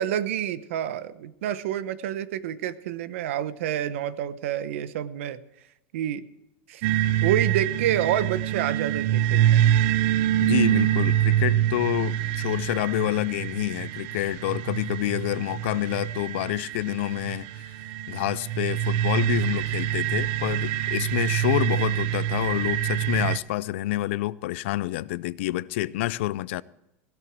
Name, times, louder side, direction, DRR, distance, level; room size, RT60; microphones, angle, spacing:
voice 1, 0.0-5.4 5.9-6.3 6.7-6.8 7.2-9.6, right 11 dB, 80° right, 0.9 m, -28 dB
sound 1, 6.8-23.4, right 12 dB, 50° right, 0.6 m, -25 dB
voice 2, 10.4-17.6 18.1-26.6, left 16 dB, 65° left, 0.4 m, -28 dB
16.0 x 12.5 x 4.6 m
supercardioid pair, 175°, 7 cm